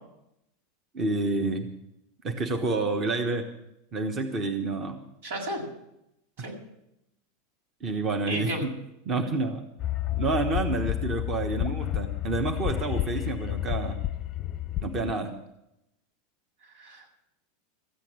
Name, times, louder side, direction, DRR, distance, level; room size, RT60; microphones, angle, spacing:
voice 1, 0.9-1.7 2.2-3.5 3.9-5.1 6.4-6.5 7.8-8.8 9.0-9.6 10.2-14.0 14.8-15.3, right 3 dB, 25° right, 6 dB, 1.2 m, -29 dB
voice 2, 5.2-5.6 6.4-6.5 8.3-8.6 16.6-17.2, right 1 dB, 90° right, 0 dB, 6.5 m, -34 dB
Ambient Loop, 9.8-15.1, left 14 dB, 25° left, 0.6 m, -30 dB
14.5 x 8.3 x 9.4 m, 0.83 s
supercardioid pair, 150°, 0 cm